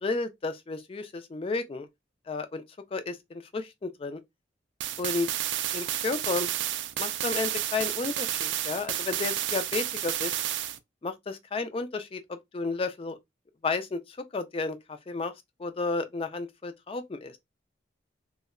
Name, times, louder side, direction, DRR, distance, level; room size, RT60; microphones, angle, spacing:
voice 1, 0.0-1.9 2.3-2.6 2.9-4.2 5.0-5.3 5.7-6.5 7.0-10.4 11.0-12.2 12.5-13.2 13.6-14.0 14.3-14.8 15.1-15.3 15.6-17.4, left 3 dB, 30° left, 0.3 m, -32 dB
sound 1, 4.8-10.8, right 12 dB, 75° right, 0.3 m, -31 dB
2.2 x 2.0 x 3.5 m
head